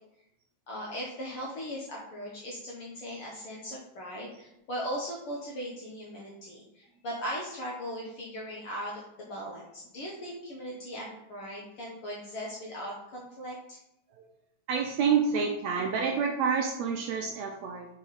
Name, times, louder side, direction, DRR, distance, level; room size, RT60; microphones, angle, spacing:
voice 1, 0.7-13.8, equal, 65° left, -3 dB, 1.4 m, -38 dB
voice 2, 14.7-17.9, right 6 dB, 80° right, 1 dB, 1.7 m, -28 dB
5.7 x 4.0 x 4.8 m, 0.84 s
omnidirectional pair, 3.6 m